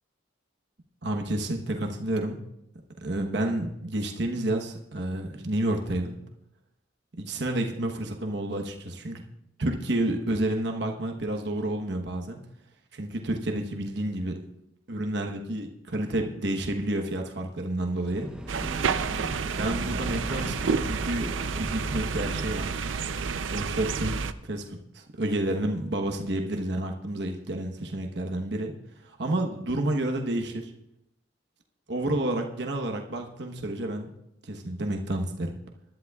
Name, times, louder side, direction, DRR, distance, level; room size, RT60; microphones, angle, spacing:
voice 1, 1.0-2.4 3.0-6.2 7.2-9.2 9.6-12.4 12.9-14.4 14.9-18.3 19.2-22.7 23.4-28.7 29.0-30.7 31.9-34.1 34.4-35.5, right 1 dB, 60° right, 3 dB, 1.1 m, -30 dB
sound 1, 17.9-23.0, equal, 5° right, 0.7 m, -39 dB
sound 2, 18.5-24.3, right 5 dB, 90° right, 0.5 m, -30 dB
21.5 x 11.5 x 2.4 m, 0.82 s
head